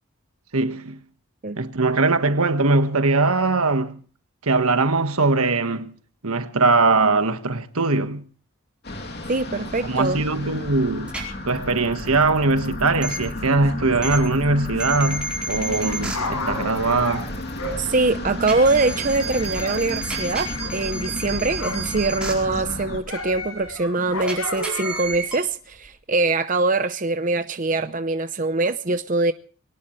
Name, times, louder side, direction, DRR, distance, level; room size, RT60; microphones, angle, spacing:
voice 1, 0.5-1.0 1.6-4.0 4.4-5.9 6.2-8.2 9.8-11.1 11.5-17.3, right 3 dB, 85° right, 1.5 m, -21 dB
sound 1, 8.8-23.0, left 1 dB, 50° left, 2.9 m, -33 dB
voice 2, 9.3-10.2 17.8-29.3, right 3 dB, 35° right, 0.7 m, -23 dB
sound 2, 11.1-11.2 13.0-13.2 14.0-14.2 14.8-16.1 18.4-22.3 24.2-25.4, right 2 dB, 5° right, 4.5 m, -31 dB
Dog, 15.8-19.8 20.0-22.0 22.3-25.2 25.8-25.9, left 2 dB, 80° left, 7.7 m, -33 dB
23.0 x 18.5 x 3.2 m
head